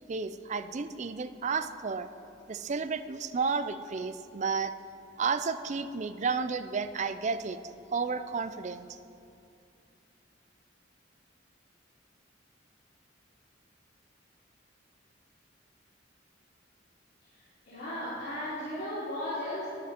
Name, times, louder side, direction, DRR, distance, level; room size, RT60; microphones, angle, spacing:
voice 1, 0.1-2.1 2.5-4.7 5.2-7.6 7.9-8.9, right 5 dB, 35° right, 12 dB, 0.4 m, -32 dB
voice 2, 17.6-19.7, left 1 dB, 55° left, -12 dB, 3.3 m, -35 dB
12.5 x 10.0 x 4.3 m, 2.6 s
head